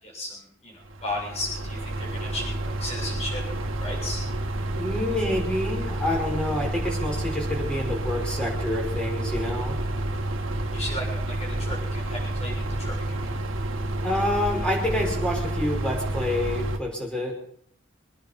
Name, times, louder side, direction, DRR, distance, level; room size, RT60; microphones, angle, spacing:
voice 1, 0.0-4.2 10.7-13.4, left 1 dB, 35° left, -2 dB, 7.2 m, -35 dB
sound 1, 0.8-16.8, right 1 dB, 75° right, 2.0 m, -29 dB
voice 2, 4.8-9.8 14.0-17.4, left 1 dB, 5° left, -1 dB, 5.6 m, -28 dB
25.5 x 10.0 x 5.4 m, 0.63 s
head